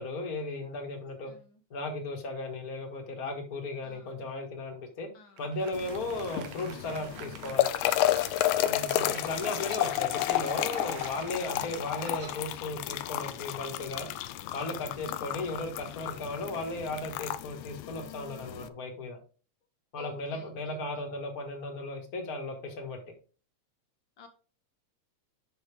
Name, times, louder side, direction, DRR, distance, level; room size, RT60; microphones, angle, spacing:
voice 1, 0.0-1.3 1.7-5.1 5.4-7.7 8.6-14.1 14.5-19.2 19.9-23.0, left 2 dB, 40° left, 3 dB, 1.7 m, -36 dB
voice 2, 1.2-1.6 3.8-4.2 5.1-5.5 11.5-11.8 15.0-15.4 20.0-21.0 24.2-24.3, left 3 dB, 60° left, 5 dB, 1.3 m, -53 dB
Applause, 5.4-13.0, right 8 dB, 75° right, 2.1 m, -48 dB
sound 1, 5.7-18.7, left 14 dB, 90° left, 2.0 m, -32 dB
sound 2, 7.9-8.4 9.1-10.1 10.7-11.4 12.0-12.4, right 3 dB, 40° right, 0.6 m, -49 dB
7.9 x 5.9 x 3.4 m, 0.37 s
omnidirectional pair, 3.3 m